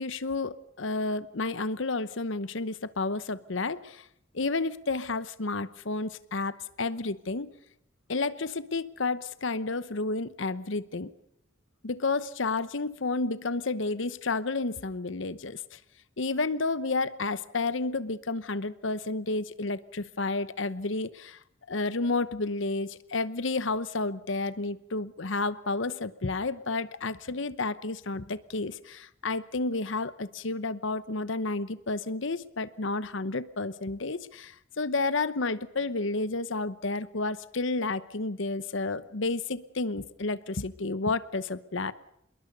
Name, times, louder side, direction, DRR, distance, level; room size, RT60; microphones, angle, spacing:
voice 1, 0.0-4.0 4.3-7.5 8.1-11.1 11.8-15.8 16.2-21.4 21.7-41.9, left 3 dB, 65° left, 15 dB, 0.9 m, -31 dB
27.0 x 21.5 x 5.4 m, 0.77 s
head